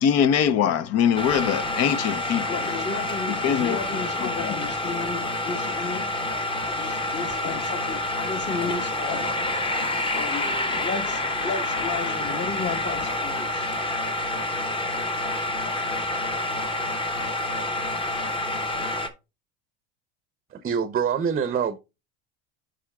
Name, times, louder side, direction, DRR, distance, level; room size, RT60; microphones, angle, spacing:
voice 1, 0.0-2.6 3.3-3.8 4.2-4.6, left 8 dB, 50° left, 0.7 m, -23 dB
sound 1, 1.1-19.1, left 1 dB, 15° left, 0.9 m, -28 dB
voice 2, 2.5-6.1 6.6-9.4 10.1-13.8, left 5 dB, 35° left, 1.4 m, -33 dB
voice 3, 20.5-21.8, right 7 dB, 25° right, 0.7 m, -25 dB
9.9 x 5.0 x 2.3 m
supercardioid pair, 100°, 32 cm